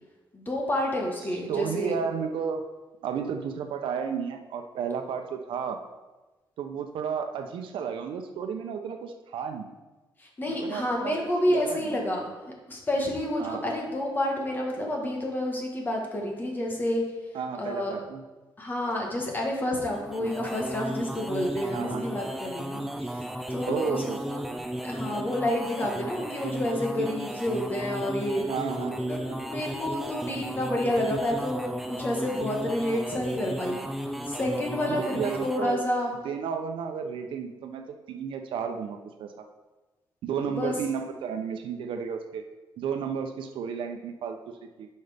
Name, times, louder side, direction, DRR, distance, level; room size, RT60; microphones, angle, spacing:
voice 1, 0.3-2.0 10.2-12.3 12.7-17.0 17.6-18.0 18.6-23.2 23.5-24.4 24.8-28.4 28.8-33.8 34.3-36.1 40.5-40.7, left 1 dB, 25° left, 0 dB, 1.4 m, -29 dB
voice 2, 1.5-2.6 3.0-5.8 6.6-9.7 10.5-11.2 11.5-12.0 13.4-13.7 17.3-18.2 21.7-22.0 23.7-24.2 28.5-29.4 34.9-35.8 36.2-39.4 40.2-42.4 42.8-44.9, right 7 dB, 85° right, 6 dB, 0.8 m, -33 dB
sound 1, 19.9-35.8, right 1 dB, 5° right, 0.4 m, -34 dB
10.5 x 5.4 x 3.5 m, 1.2 s
wide cardioid pair, 170°, 8 cm